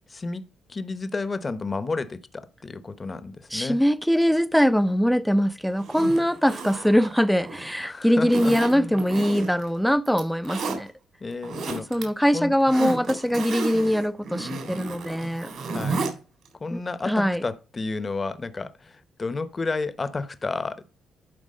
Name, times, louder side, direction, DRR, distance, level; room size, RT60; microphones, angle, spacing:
voice 1, 0.1-0.4 0.7-3.8 7.8-9.0 11.2-12.5 15.7-16.1 16.6-20.8, left 3 dB, 30° left, 0.9 m, -31 dB
voice 2, 3.5-10.9 11.9-15.5 16.7-16.8 17.1-17.4, equal, ahead, 0.5 m, -22 dB
Zipper (clothing), 5.8-7.7 8.3-9.7 10.1-10.8 11.3-12.0 12.4-16.1 16.5-16.6, right 3 dB, 65° right, 3.6 m, -32 dB
11.5 x 4.6 x 5.4 m
cardioid pair, 90°, 0 cm